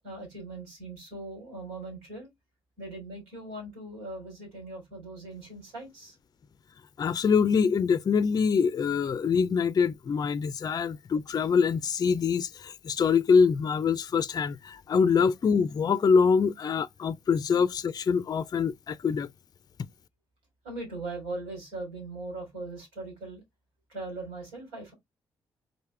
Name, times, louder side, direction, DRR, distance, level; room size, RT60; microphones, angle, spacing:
voice 1, 0.0-2.3 2.8-6.1 20.6-23.4 23.9-24.9, right 2 dB, 85° right, 3.1 m, -40 dB
voice 2, 7.0-19.3, left 6 dB, 40° left, 0.4 m, -24 dB
4.0 x 3.3 x 3.2 m
hypercardioid pair, 40°, 10 cm